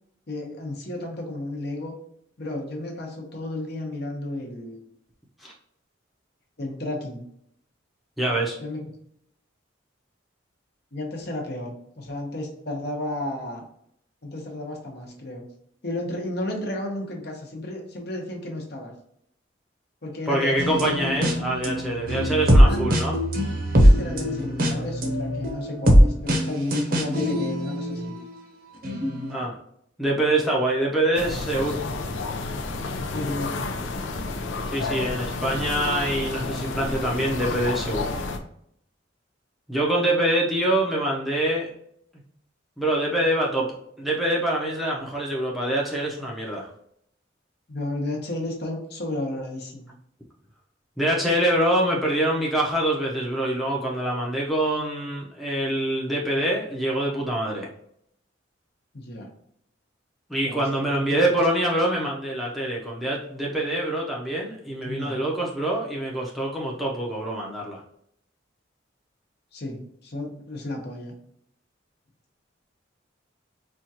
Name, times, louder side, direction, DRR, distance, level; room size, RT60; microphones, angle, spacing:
voice 1, 0.3-1.9 2.4-4.8 6.6-7.2 8.6-8.9 10.9-13.6 14.2-15.4 15.8-18.9 20.0-20.9 22.3-23.1 23.8-28.1 33.1-33.8 47.7-49.9 58.9-59.3 60.4-61.2 64.8-65.2 69.5-71.1, left 1 dB, 55° left, 0 dB, 0.9 m, -33 dB
voice 2, 8.2-8.6 20.3-23.2 29.3-29.5 30.0-31.8 34.7-38.1 39.7-41.7 42.8-43.7 44.0-46.7 51.0-57.7 60.3-67.8, right 1 dB, ahead, -4 dB, 0.6 m, -25 dB
sound 1, 20.6-28.3 28.8-29.4, equal, 50° right, 0.7 m, -21 dB
sound 2, 31.1-38.4, left 3 dB, 75° left, 0.5 m, -30 dB
4.3 x 2.4 x 2.8 m, 0.71 s
head